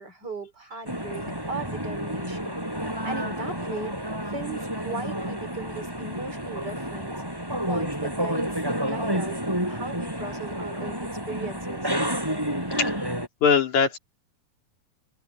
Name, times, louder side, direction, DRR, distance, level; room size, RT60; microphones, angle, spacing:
voice 1, 0.0-2.6 3.0-3.9 4.3-7.2 7.7-11.9, right 3 dB, 35° right, 4.3 m, -37 dB
sound 1, 0.9-13.3, equal, 5° right, 7.4 m, -30 dB
voice 2, 12.7-13.1 13.4-14.0, left 6 dB, 75° left, 4.4 m, -22 dB
open air
omnidirectional pair, 3.5 m